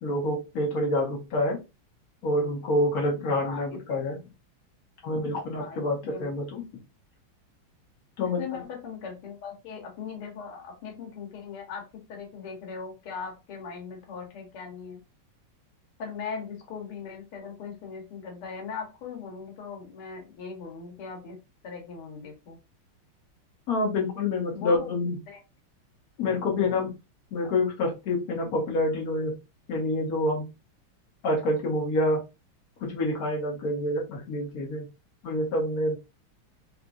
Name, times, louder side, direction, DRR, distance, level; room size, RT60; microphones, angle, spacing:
voice 1, 0.0-1.6 2.2-4.2 5.0-6.6 8.2-8.4 23.7-25.2 26.2-26.9 27.3-29.3 29.7-30.5 31.2-32.2 32.8-34.9 35.2-36.0, left 1 dB, 50° left, -2 dB, 1.5 m, -27 dB
voice 2, 3.3-3.8 5.6-6.3 8.2-11.8 12.1-15.0 16.0-21.4 21.6-22.6 24.5-24.9 25.3-25.4, left 5 dB, 85° left, 1 dB, 2.0 m, -39 dB
4.0 x 2.5 x 2.3 m, 0.27 s
omnidirectional pair, 2.3 m